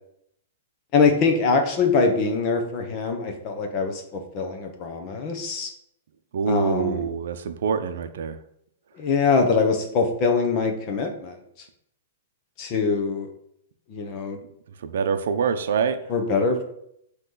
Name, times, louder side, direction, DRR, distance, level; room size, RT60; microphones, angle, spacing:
voice 1, 0.9-5.7 6.5-7.1 8.9-11.4 12.6-13.3 13.9-14.4 16.1-16.6, left 4 dB, 30° left, 4 dB, 1.0 m, -23 dB
voice 2, 6.3-8.3 14.9-16.0, right 6 dB, 70° right, 9 dB, 0.6 m, -25 dB
8.0 x 3.1 x 3.9 m, 0.73 s
hypercardioid pair, 160°, 0 cm